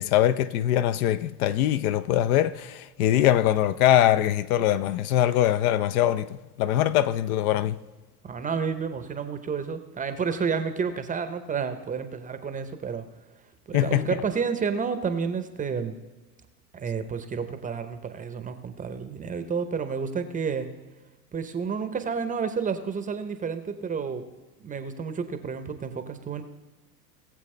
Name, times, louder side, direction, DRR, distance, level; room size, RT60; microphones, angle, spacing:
voice 1, 0.0-7.8 13.7-14.1, left 12 dB, 60° left, 0.6 m, -22 dB
voice 2, 8.2-13.1 13.7-16.0 16.7-20.7 21.3-24.2 24.6-26.4, right 6 dB, 15° right, 0.7 m, -30 dB
19.5 x 7.3 x 3.3 m
hypercardioid pair, 110°, 50 cm